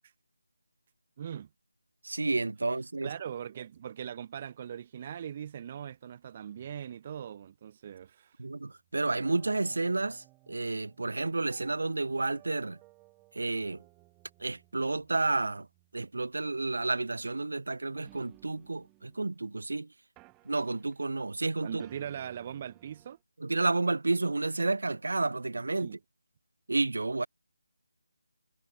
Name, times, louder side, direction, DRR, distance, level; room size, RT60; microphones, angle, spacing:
voice 1, 1.2-1.5 3.0-8.3 21.6-23.2 25.8-26.0, right 9 dB, 30° right, 1.1 m, -40 dB
voice 2, 2.0-3.1 8.4-12.8 13.3-13.8 14.4-15.7 15.9-19.9 20.5-21.8 23.4-26.0 26.7-27.3, right 3 dB, 70° right, 0.5 m, -31 dB
sound 1, 8.7-19.7 20.2-21.4 21.8-23.2, right 24 dB, 10° right, 5.2 m, -61 dB
figure-of-eight pair, 160°, 0 cm